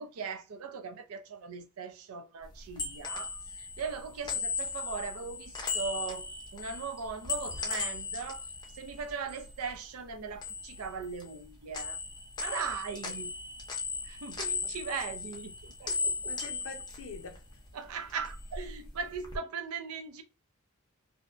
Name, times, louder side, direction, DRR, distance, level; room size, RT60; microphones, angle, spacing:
voice 1, 0.0-8.5 8.7-12.0 12.4-13.3 14.0-15.5 15.8-16.3 17.7-20.2, right 5 dB, 75° right, 0.4 m, -39 dB
sound 1, 2.5-9.8 10.1-11.5 11.7-17.7 18.1-19.4, left 4 dB, 20° left, 0.5 m, -37 dB
sound 2, 7.0-7.1 7.5-8.1 8.7-8.8 9.3-9.8 10.5-10.6 11.0-11.2, equal, 25° right, 0.9 m, -57 dB
voice 2, 16.3-17.5, left 4 dB, 65° left, 0.6 m, -45 dB
2.6 x 2.1 x 2.4 m
head